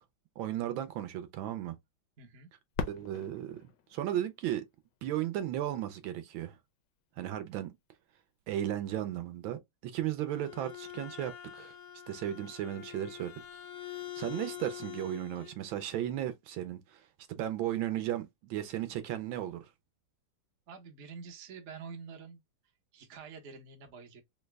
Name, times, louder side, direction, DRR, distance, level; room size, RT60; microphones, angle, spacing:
voice 1, 0.4-1.8 2.9-3.6 3.9-4.6 5.0-6.6 7.2-7.7 8.5-11.7 12.1-13.3 14.1-19.7, right 12 dB, 75° right, 1.3 m, -35 dB
voice 2, 2.2-2.5 20.7-22.4 22.9-24.2, right 5 dB, 55° right, 0.8 m, -47 dB
Fireworks, 2.7-5.5 6.2-6.3 7.0-7.4 9.3-9.4, left 6 dB, 70° left, 1.1 m, -42 dB
Bowed string instrument, 10.1-15.6, left 12 dB, 90° left, 1.8 m, -45 dB
3.8 x 2.1 x 3.2 m
omnidirectional pair, 2.3 m